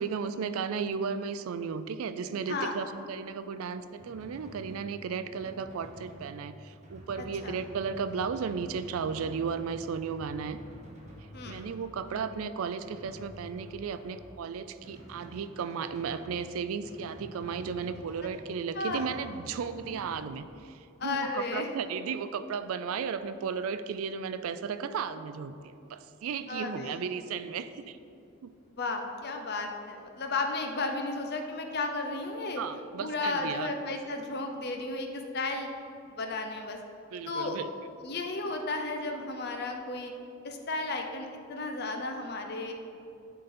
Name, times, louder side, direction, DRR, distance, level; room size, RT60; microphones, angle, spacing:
voice 1, 0.0-10.6 11.5-28.0 28.4-28.5 32.6-33.7 37.1-37.7, right 6 dB, 75° right, 12 dB, 0.4 m, -35 dB
Drum, 4.0-20.4, equal, 30° right, 1.0 m, -49 dB
voice 2, 7.2-7.5 11.3-11.7 18.7-19.1 21.0-21.7 26.5-27.0 28.8-32.6 33.0-35.7 36.1-36.8 37.3-37.6 38.0-40.1 40.4-42.7, left 3 dB, 50° left, 4 dB, 0.7 m, -34 dB
11.0 x 3.9 x 4.2 m, 2.6 s
head